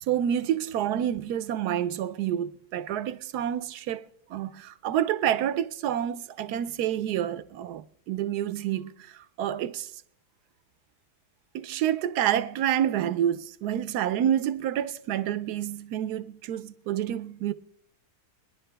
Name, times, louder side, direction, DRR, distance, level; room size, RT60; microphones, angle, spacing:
voice 1, 0.1-4.0 4.3-9.9 11.5-17.5, right 10 dB, 80° right, 1.2 m, -28 dB
21.0 x 11.0 x 3.4 m
omnidirectional pair, 1.7 m